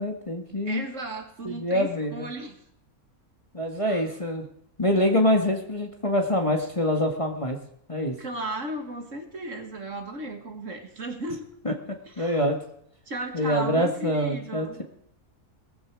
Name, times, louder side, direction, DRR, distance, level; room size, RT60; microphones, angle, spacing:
voice 1, 0.0-0.8 1.4-2.3 3.5-4.5 4.8-7.6 7.9-8.2 11.6-11.7 12.2-12.6 13.3-14.8, left 1 dB, 20° left, 3 dB, 1.9 m, -25 dB
voice 2, 0.7-2.6 3.9-4.0 8.2-11.5 12.1-12.5 13.1-14.8, right 1 dB, 55° right, 5 dB, 2.2 m, -35 dB
19.0 x 14.5 x 4.8 m, 0.70 s
omnidirectional pair, 1.6 m